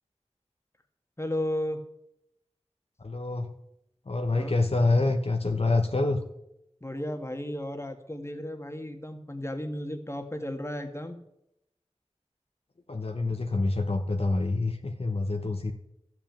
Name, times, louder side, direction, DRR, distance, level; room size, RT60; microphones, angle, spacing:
voice 1, 1.2-1.8 4.4-4.5 6.8-11.2, left 1 dB, 20° left, 6 dB, 1.7 m, -34 dB
voice 2, 3.0-3.5 4.1-6.2 12.9-15.7, left 2 dB, 55° left, 4 dB, 1.0 m, -26 dB
13.5 x 6.0 x 8.8 m, 0.83 s
wide cardioid pair, 50°, 12 cm